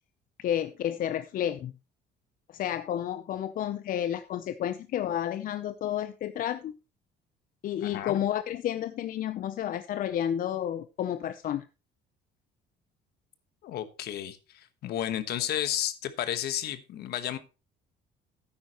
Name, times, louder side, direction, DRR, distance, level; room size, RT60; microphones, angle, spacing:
voice 1, 0.4-1.7 2.5-6.7 7.6-11.7, left 10 dB, 55° left, 0.6 m, -31 dB
voice 2, 7.8-8.2 13.6-17.4, left 11 dB, 70° left, 1.2 m, -32 dB
12.5 x 9.6 x 3.0 m
cardioid pair, 110°, 17 cm